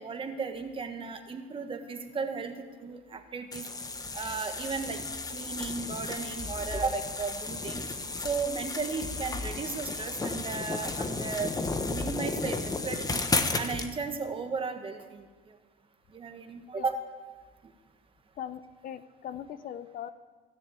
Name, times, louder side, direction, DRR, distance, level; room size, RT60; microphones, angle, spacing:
voice 1, 0.0-3.7 4.1-5.0 5.3-7.9 8.2-11.5 11.9-13.2 13.6-15.2 16.1-17.0, right 4 dB, 30° right, 6 dB, 1.5 m, -35 dB
sound 1, 3.5-13.9, left 3 dB, 20° left, 1.1 m, -33 dB
voice 2, 18.4-20.1, left 10 dB, 55° left, 13 dB, 0.6 m, -40 dB
16.0 x 6.9 x 9.4 m, 1.4 s
cardioid pair, 110°, 17 cm